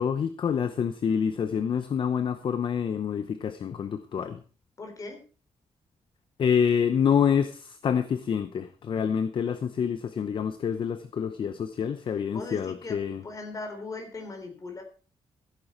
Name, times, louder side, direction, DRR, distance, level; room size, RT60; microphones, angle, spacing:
voice 1, 0.0-4.4 6.4-13.2, left 7 dB, 50° left, 12 dB, 0.9 m, -27 dB
voice 2, 4.8-5.2 12.3-14.8, left 3 dB, 30° left, 4 dB, 3.8 m, -39 dB
15.5 x 8.9 x 4.5 m, 0.37 s
cardioid pair, 130°, 11 cm